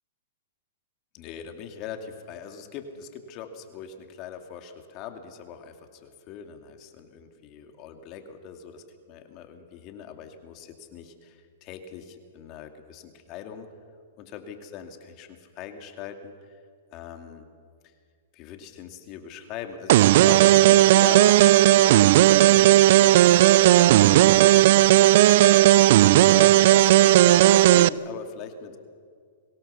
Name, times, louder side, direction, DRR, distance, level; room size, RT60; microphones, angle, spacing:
voice 1, 1.1-13.7 14.2-16.3 16.9-17.5 18.3-21.4 21.7-22.1 22.8-23.9 24.4-25.6 26.3-28.8, left 8 dB, 40° left, 5 dB, 2.5 m, -41 dB
sound 1, 19.9-27.9, right 14 dB, 60° right, 0.5 m, -15 dB
23.5 x 17.5 x 7.0 m, 2.2 s
hypercardioid pair, 125°, 0 cm